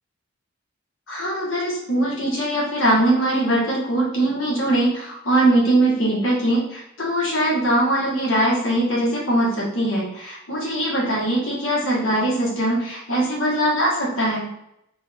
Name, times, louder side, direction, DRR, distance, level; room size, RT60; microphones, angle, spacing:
voice 1, 1.1-14.5, right 1 dB, 80° left, -4 dB, 1.6 m, -21 dB
4.0 x 2.6 x 3.7 m, 0.80 s
head